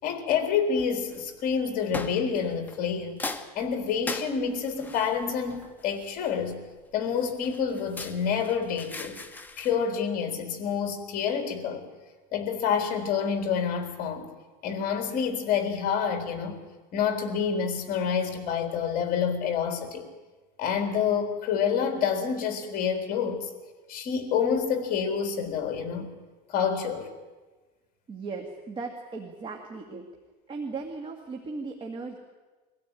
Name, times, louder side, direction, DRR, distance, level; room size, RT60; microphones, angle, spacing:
voice 1, 0.0-3.2 3.6-6.6 6.9-9.2 9.6-11.9 12.3-14.3 14.6-16.6 16.9-20.1 20.6-23.5 23.9-26.1 26.5-27.1, left 7 dB, 45° left, 5 dB, 3.8 m, -28 dB
sound 1, 0.8-1.2 1.9-2.9 3.2-6.5 7.2-9.8, left 3 dB, 10° left, 1.2 m, -39 dB
voice 2, 28.1-30.1 30.5-32.2, right 4 dB, 25° right, 3 dB, 2.1 m, -37 dB
23.0 x 16.5 x 9.1 m, 1.3 s
supercardioid pair, 140°, 20 cm